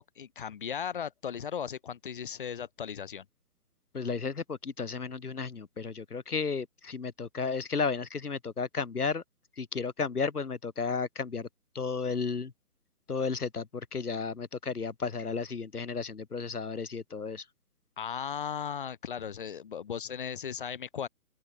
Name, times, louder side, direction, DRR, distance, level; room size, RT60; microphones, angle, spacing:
voice 1, 0.0-3.2 18.0-21.1, left 8 dB, 35° left, 1.3 m, -37 dB
voice 2, 3.9-9.2 9.6-11.5 11.7-12.5 13.1-17.4, left 5 dB, 90° left, 1.0 m, -33 dB
open air
figure-of-eight pair, 145°, 44 cm